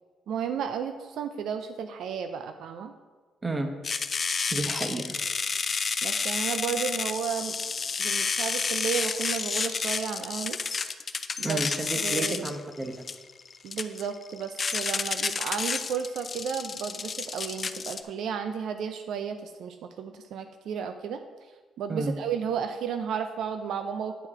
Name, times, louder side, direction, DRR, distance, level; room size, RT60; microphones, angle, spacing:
voice 1, 0.3-2.9 6.0-7.6 8.0-10.6 11.4-11.6 12.0-12.5 13.6-21.2 21.8-24.3, right 7 dB, 75° right, 8 dB, 0.4 m, -33 dB
sound 1, 3.8-18.0, left 5 dB, 40° left, 0.4 m, -30 dB
voice 2, 4.5-5.2 11.4-13.0 21.9-22.1, right 2 dB, 25° right, 6 dB, 0.9 m, -31 dB
9.0 x 4.5 x 4.8 m, 1.3 s
cardioid pair, 90°, 0 cm